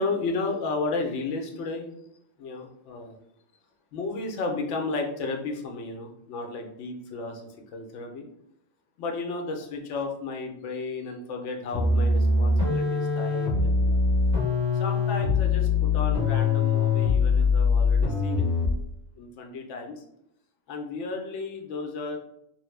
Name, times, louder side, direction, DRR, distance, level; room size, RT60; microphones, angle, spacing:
voice 1, 0.0-1.9 2.4-3.2 3.9-8.3 9.0-14.0 14.7-18.5 19.2-20.0 20.7-22.2, left 3 dB, 75° left, 2 dB, 0.9 m, -33 dB
sound 1, 11.7-18.9, left 4 dB, 55° right, 1.3 m, -23 dB
3.0 x 2.1 x 3.1 m, 0.75 s
omnidirectional pair, 1.3 m